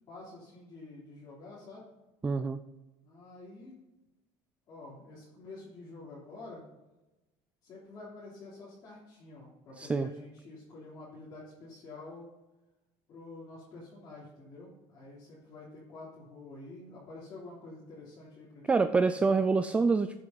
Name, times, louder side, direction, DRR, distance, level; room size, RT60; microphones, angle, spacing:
voice 1, 0.1-1.9 3.0-3.7 4.7-6.6 7.6-12.3 13.1-18.8, left 2 dB, 35° left, -8 dB, 3.4 m, -48 dB
voice 2, 2.2-2.6 9.8-10.1 18.7-20.2, right 4 dB, 10° right, 11 dB, 0.3 m, -26 dB
13.5 x 7.7 x 4.0 m, 1.0 s
cardioid pair, 155°, 11 cm